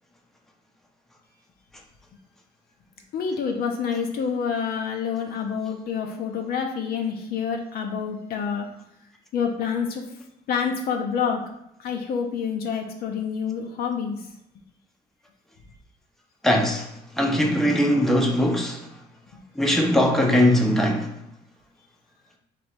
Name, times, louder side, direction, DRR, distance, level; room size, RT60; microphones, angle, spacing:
voice 1, 3.1-8.7 9.3-10.0 10.5-11.4 11.8-14.3 19.3-19.4, left 6 dB, 65° left, 0.7 m, -27 dB
voice 2, 16.4-16.9 17.2-18.8 19.6-21.1, left 1 dB, ahead, 0.6 m, -20 dB
3.3 x 3.0 x 4.4 m
cardioid pair, 110°, 17 cm